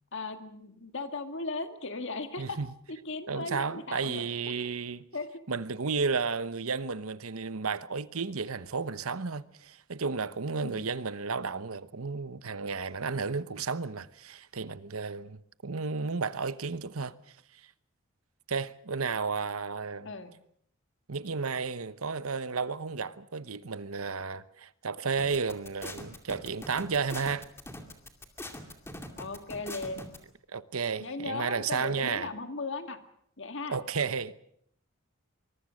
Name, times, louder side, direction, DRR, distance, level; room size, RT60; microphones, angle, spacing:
voice 1, 0.1-2.6 2.9-4.7 5.1-5.4 10.6-10.8 20.1-20.3 29.2-30.1 31.0-33.0 33.4-33.8, left 3 dB, 60° left, 2.1 m, -37 dB
voice 2, 3.3-5.1 5.5-17.2 18.5-20.1 21.1-27.5 30.5-32.3 33.7-34.4, right 5 dB, 85° right, 1.0 m, -33 dB
sound 1, 25.2-30.2, left 1 dB, 10° left, 2.4 m, -42 dB
24.0 x 22.5 x 6.4 m
head